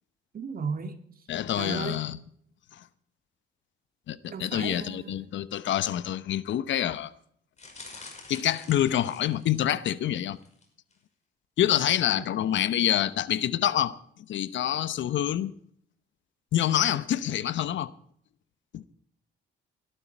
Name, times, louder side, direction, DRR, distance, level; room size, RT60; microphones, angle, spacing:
voice 1, 0.3-1.0 1.6-2.0 4.3-5.3, right 5 dB, 45° right, 2.2 m, -35 dB
voice 2, 1.3-2.2 2.7-2.8 4.1-7.1 8.3-10.4 11.6-13.9 14.3-15.5 16.5-17.9 18.7-18.8, left 11 dB, 70° left, 0.9 m, -27 dB
sound 1, 7.6-9.8 10.4-10.6 10.9-11.0, left 3 dB, 35° left, 5.4 m, -47 dB
18.0 x 12.5 x 4.5 m
cardioid pair, 90°, 20 cm